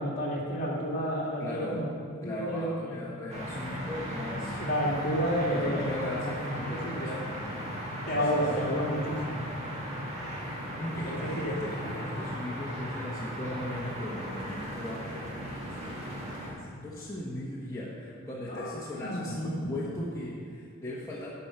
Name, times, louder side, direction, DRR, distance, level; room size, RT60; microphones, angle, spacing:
voice 1, 0.0-1.9 2.2-3.1 4.6-7.2 8.1-9.5 10.9-11.8 18.5-19.7, equal, 45° left, -5 dB, 2.5 m, -31 dB
voice 2, 1.4-1.8 2.2-4.6 5.5-7.8 8.6-9.0 10.8-21.3, left 1 dB, 15° left, -7 dB, 1.2 m, -38 dB
sound 1, 3.3-16.5, equal, 30° right, 1.9 m, -37 dB
11.0 x 6.4 x 5.8 m, 2.2 s
head